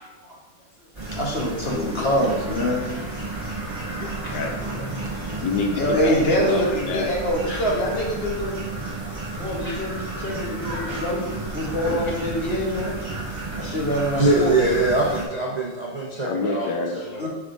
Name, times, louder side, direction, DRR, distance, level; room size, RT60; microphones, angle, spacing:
sound 1, 0.9-15.3, right 2 dB, 15° right, 1.6 m, -32 dB
voice 1, 1.1-3.0 3.5-3.6 5.0-5.3 5.7-8.6 9.4-11.2 11.5-12.9 13.6-14.9 17.2-17.3, equal, 35° left, -3 dB, 1.3 m, -25 dB
voice 2, 1.7-2.3 3.9-5.1 5.4-7.1 16.2-17.3, left 3 dB, 75° left, 3 dB, 1.2 m, -28 dB
voice 3, 14.2-16.7 17.2-17.3, right 2 dB, 50° right, -4 dB, 0.5 m, -23 dB
6.2 x 3.6 x 5.0 m, 1.2 s
omnidirectional pair, 2.0 m